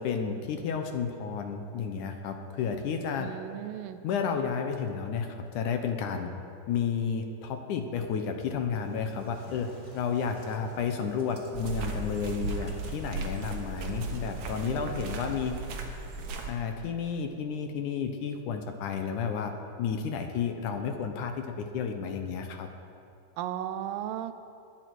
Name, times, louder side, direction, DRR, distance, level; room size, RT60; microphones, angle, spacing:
voice 1, 0.0-3.3 4.0-6.3 6.7-9.7 9.9-15.6 16.5-19.5 19.8-22.7, left 6 dB, 75° left, 5 dB, 2.2 m, -32 dB
voice 2, 3.2-4.0 23.4-24.3, right 11 dB, 85° right, 10 dB, 2.4 m, -35 dB
Engine starting, 8.7-15.6, right 2 dB, 20° right, 1.0 m, -50 dB
sound 1, 11.5-16.5, right 3 dB, 60° right, 2.2 m, -36 dB
21.0 x 11.0 x 4.6 m, 2.5 s
omnidirectional pair, 4.1 m